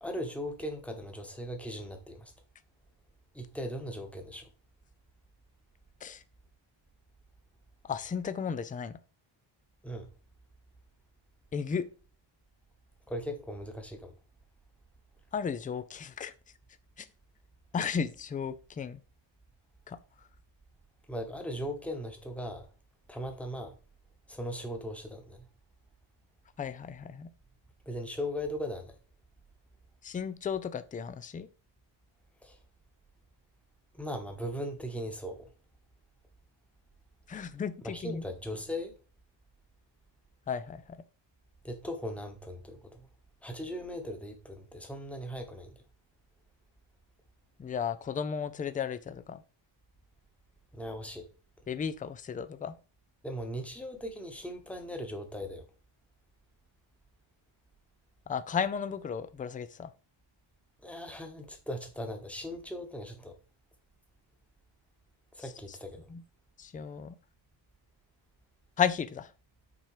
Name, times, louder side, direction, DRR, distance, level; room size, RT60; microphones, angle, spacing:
voice 1, 0.0-2.3 3.3-4.5 9.8-10.1 13.1-14.1 21.1-22.7 23.1-23.7 24.3-25.4 27.9-29.0 32.4-32.6 33.9-35.5 37.8-38.9 41.6-43.1 43.4-45.8 50.7-51.3 53.2-55.6 60.8-63.4 65.3-66.1, equal, 5° left, 1.1 m, -38 dB
voice 2, 7.8-9.0 11.5-11.9 15.3-16.3 17.0-17.1 17.7-19.0 19.9-20.0 26.6-27.3 30.0-31.5 37.3-38.2 40.5-41.0 47.6-49.4 51.7-52.7 58.3-59.9 65.4-65.8 66.1-66.2 66.6-67.1 68.8-69.3, left 7 dB, 20° left, 0.3 m, -34 dB
6.1 x 4.3 x 4.8 m
cardioid pair, 150°, 47 cm